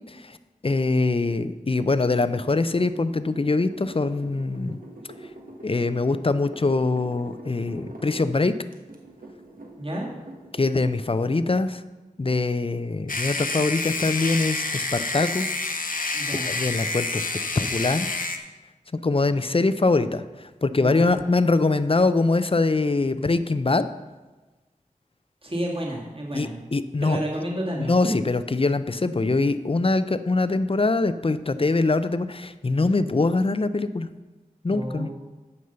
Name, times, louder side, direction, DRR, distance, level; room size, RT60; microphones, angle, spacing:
voice 1, 0.6-4.8 5.6-8.5 10.6-11.8 12.2-15.5 16.5-17.2 17.6-18.1 19.0-20.2 20.6-23.9 26.3-27.2 27.8-34.1 34.6-35.1, left 3 dB, 40° left, 12 dB, 0.5 m, -23 dB
sound 1, 1.8-8.3 8.7-11.2, right 1 dB, 80° right, 1.3 m, -44 dB
voice 2, 9.8-10.1 16.1-16.5 20.8-21.2 25.4-26.6 27.0-28.2 34.7-35.1, right 1 dB, 40° right, -3 dB, 2.1 m, -30 dB
sound 2, 13.1-18.4, left 3 dB, 80° left, 0.8 m, -28 dB
9.6 x 5.4 x 6.8 m, 1.2 s
wide cardioid pair, 50°, 14 cm